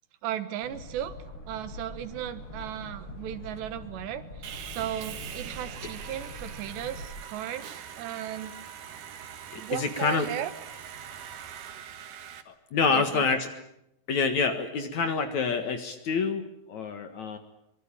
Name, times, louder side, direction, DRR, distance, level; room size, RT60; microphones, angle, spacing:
voice 1, 0.2-1.1 1.5-8.5 9.6-10.5 12.9-13.3, right 11 dB, 85° right, 12 dB, 3.6 m, -36 dB
sound 1, 0.6-7.1, left 1 dB, 75° left, 10.0 m, -43 dB
Sawing, 4.4-12.4, right 8 dB, 60° right, 2.7 m, -43 dB
voice 2, 9.5-10.3 12.5-13.5 14.1-17.4, left 5 dB, 55° left, 8 dB, 2.4 m, -27 dB
24.5 x 22.5 x 8.9 m, 0.80 s
omnidirectional pair, 4.8 m